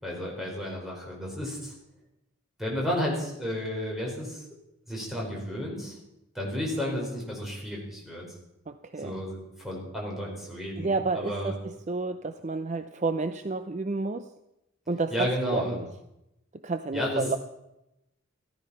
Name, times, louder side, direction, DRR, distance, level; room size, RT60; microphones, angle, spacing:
voice 1, 0.0-1.7 2.6-4.4 4.9-6.0 6.3-8.2 9.0-11.5 15.1-15.8 16.9-17.2, equal, ahead, -3 dB, 4.6 m, -32 dB
voice 2, 8.7-9.2 10.8-14.3 14.9-15.9 16.6-17.4, right 3 dB, 35° right, 10 dB, 0.5 m, -30 dB
14.5 x 13.5 x 5.7 m, 0.89 s
head